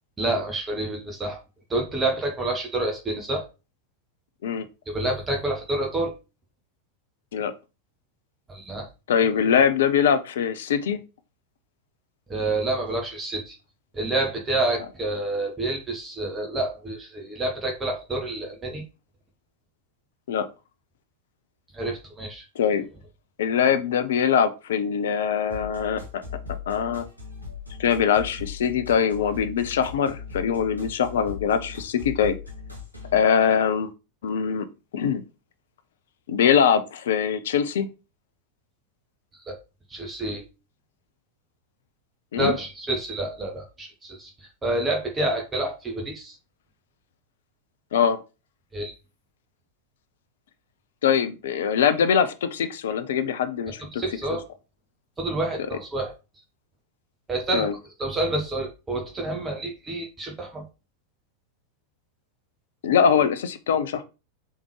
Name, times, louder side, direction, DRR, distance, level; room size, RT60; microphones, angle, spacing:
voice 1, 0.2-1.4 1.7-3.5 4.9-6.2 8.5-8.9 12.3-13.6 13.9-18.8 21.7-22.4 39.5-39.6 39.9-40.4 42.4-44.3 44.6-46.4 48.7-48.9 53.9-54.4 55.2-56.1 57.3-57.7 58.0-60.7, right 2 dB, 15° right, 0 dB, 1.0 m, -28 dB
voice 2, 9.1-11.0 20.3-20.5 22.6-22.9 23.4-26.2 26.7-27.0 27.8-32.4 33.1-33.9 34.2-34.7 34.9-35.2 36.3-37.9 42.3-42.5 47.9-48.2 51.0-54.0 54.3-54.4 57.5-57.7 62.8-64.0, left 7 dB, 60° left, 11 dB, 0.5 m, -22 dB
sound 1, 25.5-33.2, left 6 dB, 90° right, 1.5 m, -38 dB
3.6 x 3.5 x 3.1 m, 0.29 s
figure-of-eight pair, 90°, 0 cm